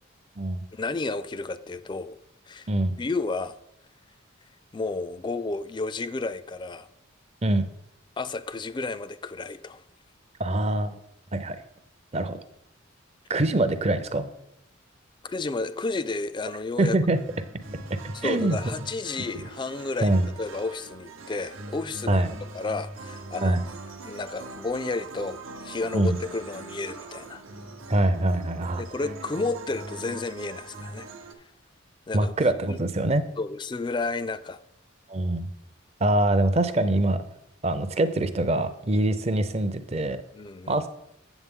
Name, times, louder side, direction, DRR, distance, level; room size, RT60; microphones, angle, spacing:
voice 1, 0.7-2.2 2.5-2.7 3.0-3.6 4.7-6.9 8.2-9.8 15.2-17.0 18.1-23.6 24.1-27.4 28.8-31.1 32.1-32.3 32.7-32.8 33.4-34.6 40.3-40.8, left 3 dB, 20° left, 0.3 m, -32 dB
voice 2, 10.4-11.0 11.3-11.6 12.1-12.4 13.3-14.2 16.8-17.2 18.0-18.7 20.0-20.3 22.1-22.3 23.4-23.6 25.9-26.2 27.9-28.8 32.1-33.2 35.1-35.5 36.0-37.2 37.6-40.2 40.7-40.9, right 1 dB, 30° right, 0.5 m, -24 dB
sound 1, 17.2-31.3, right 3 dB, 80° right, 0.8 m, -42 dB
8.1 x 7.7 x 3.6 m
head